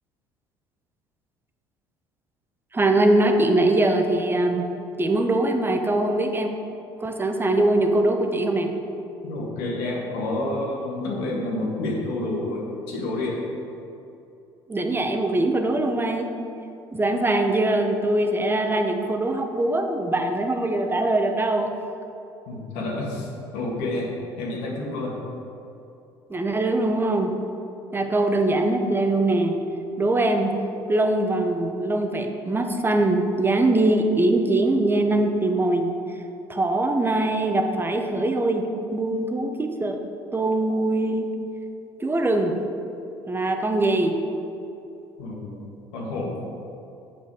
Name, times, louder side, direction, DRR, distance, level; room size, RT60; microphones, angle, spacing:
voice 1, 2.7-4.7 5.0-6.5 7.0-8.7 14.7-16.3 16.9-21.7 26.3-27.3 27.9-29.6 30.0-30.5 30.9-35.9 36.5-38.6 38.9-40.0 40.3-41.3 42.0-42.5 43.3-44.2, right 2 dB, 15° right, 5 dB, 0.9 m, -22 dB
voice 2, 9.2-13.4 22.5-23.3 23.5-25.1 45.2-45.6 45.9-46.4, left 2 dB, 70° left, -2 dB, 1.7 m, -29 dB
7.8 x 5.7 x 4.8 m, 2.7 s
hypercardioid pair, 65°, 12 cm